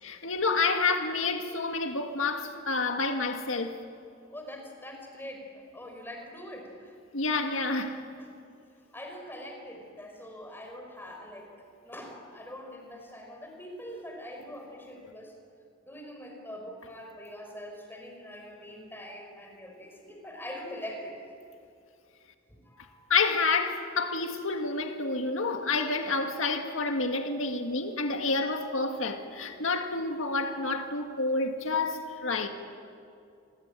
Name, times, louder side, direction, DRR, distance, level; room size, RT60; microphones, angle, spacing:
voice 1, 0.0-3.8 7.1-8.0 23.1-32.5, left 3 dB, 85° left, 1.9 m, -29 dB
voice 2, 4.3-6.9 7.5-7.7 8.2-8.5 8.9-11.5 11.8-15.4 15.8-21.2 22.5-23.1, equal, 10° left, 5.0 m, -43 dB
27.5 x 22.5 x 9.0 m
head